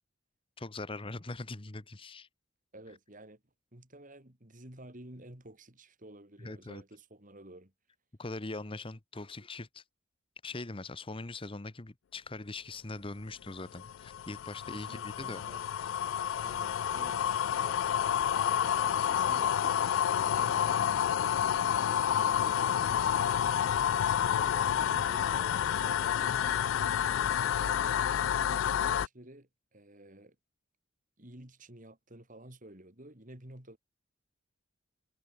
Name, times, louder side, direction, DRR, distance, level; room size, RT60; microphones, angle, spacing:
voice 1, 0.6-2.3 6.4-6.8 8.2-9.8 10.4-15.4, left 2 dB, 25° left, 1.0 m, -41 dB
voice 2, 2.7-3.4 3.7-7.7 14.7-15.6 16.4-17.2 17.5-20.0 20.4-23.3 24.3-28.0 28.4-30.4 31.2-33.8, right 1 dB, 40° right, 3.6 m, -52 dB
sound 1, 13.5-29.1, left 9 dB, 70° left, 0.3 m, -29 dB
head